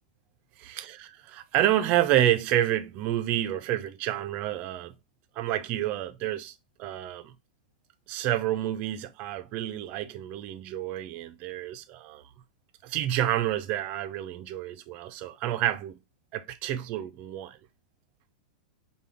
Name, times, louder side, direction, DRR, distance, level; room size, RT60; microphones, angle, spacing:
voice 1, 0.6-5.0 5.4-7.4 8.1-12.2 12.8-16.0 16.3-17.6, right 12 dB, 35° right, 0.5 m, -29 dB
5.6 x 2.3 x 3.4 m
supercardioid pair, 160°, 4 cm